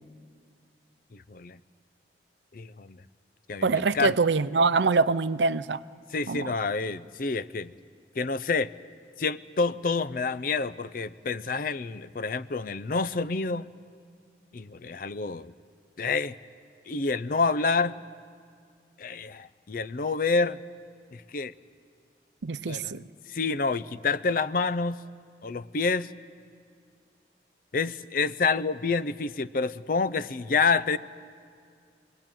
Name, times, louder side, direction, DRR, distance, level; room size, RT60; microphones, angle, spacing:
voice 1, 1.1-1.6 2.5-3.0 3.5-4.2 6.1-7.7 8.2-8.7 9.2-13.7 14.5-15.5 16.0-16.3 16.9-18.0 19.0-20.6 21.1-21.5 22.7-23.0 23.3-25.0 25.4-26.1 27.7-31.0, left 4 dB, 50° left, 15 dB, 0.5 m, -28 dB
voice 2, 3.6-5.8 6.3-6.5 22.4-23.0, right 4 dB, 80° right, 14 dB, 0.6 m, -24 dB
24.0 x 19.5 x 9.1 m, 2.2 s
head